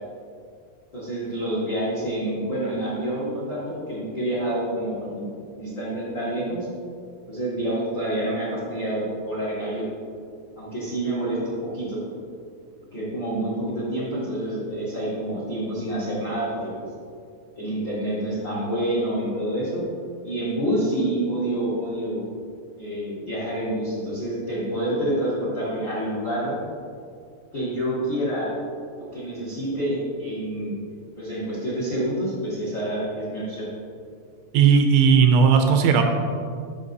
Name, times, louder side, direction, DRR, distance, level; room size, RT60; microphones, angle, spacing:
voice 1, 0.9-6.7 7.3-9.9 10.5-12.0 12.9-16.8 17.5-19.8 20.2-22.2 22.8-26.6 27.5-28.5 29.1-30.8 31.2-33.7, right 1 dB, 45° left, -8 dB, 1.6 m, -28 dB
voice 2, 34.5-36.0, right 6 dB, 80° right, 4 dB, 2.7 m, -16 dB
14.5 x 5.9 x 2.7 m, 2.3 s
omnidirectional pair, 5.8 m